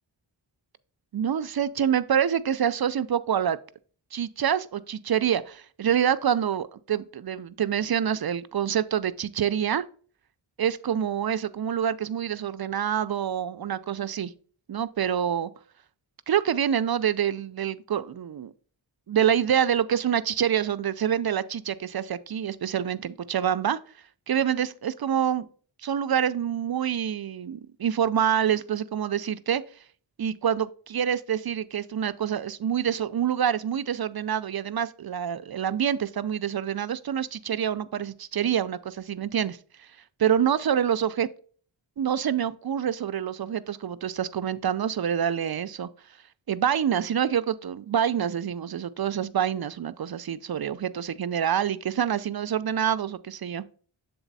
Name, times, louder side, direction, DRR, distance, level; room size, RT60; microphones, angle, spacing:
voice 1, 1.1-3.6 4.1-9.8 10.6-14.3 14.7-15.5 16.3-18.5 19.1-23.8 24.3-25.5 25.8-29.6 30.2-39.6 40.2-41.3 42.0-45.9 46.5-53.6, right 9 dB, 50° right, 0.5 m, -26 dB
7.0 x 4.0 x 4.0 m
cardioid pair, 40°, 48 cm